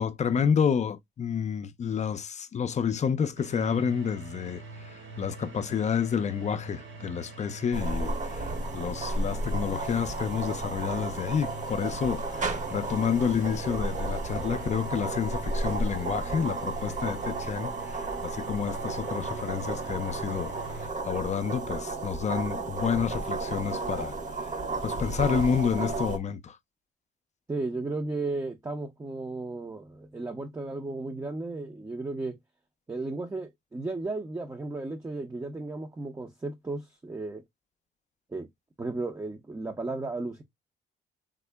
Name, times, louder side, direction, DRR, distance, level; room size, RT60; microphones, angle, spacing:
voice 1, 0.0-20.5 20.8-24.1 24.8-26.6, left 7 dB, 35° left, 0.4 m, -29 dB
sound 1, 3.4-20.9, right 3 dB, 75° right, 1.1 m, -45 dB
sound 2, 7.7-26.2, right 2 dB, 40° right, 0.9 m, -33 dB
voice 2, 27.5-32.4 32.9-37.4 38.3-38.5 38.8-40.4, right 2 dB, 15° right, 0.6 m, -34 dB
3.6 x 2.0 x 3.3 m
cardioid pair, 90°, 20 cm